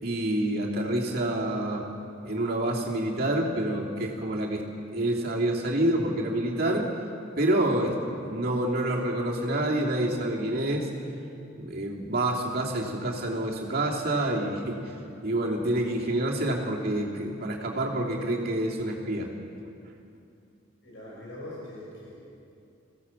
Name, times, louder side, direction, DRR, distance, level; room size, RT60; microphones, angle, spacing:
voice 1, 0.0-1.8 2.2-4.6 4.9-6.9 7.4-10.9 11.6-15.0 15.2-19.3, right 1 dB, 50° right, -1 dB, 3.0 m, -27 dB
voice 2, 20.8-22.2, left 1 dB, 60° left, -6 dB, 6.2 m, -42 dB
24.0 x 16.0 x 7.2 m, 2.6 s
head